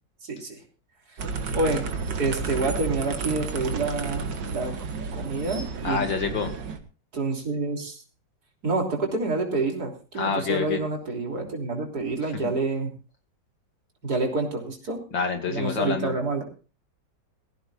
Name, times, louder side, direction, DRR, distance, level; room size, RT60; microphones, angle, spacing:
voice 1, 0.2-0.6 1.5-1.8 2.2-4.7 5.1-6.0 7.1-8.0 8.6-12.9 14.0-15.0 15.5-16.4, right 3 dB, 55° right, 1 dB, 3.8 m, -28 dB
sound 1, 1.2-6.8, right 4 dB, 70° right, 2.2 m, -31 dB
voice 2, 5.8-6.5 10.2-10.8 12.4-12.5 15.1-16.1, left 5 dB, 75° left, 5 dB, 3.1 m, -27 dB
19.5 x 15.5 x 2.6 m, 0.35 s
omnidirectional pair, 2.0 m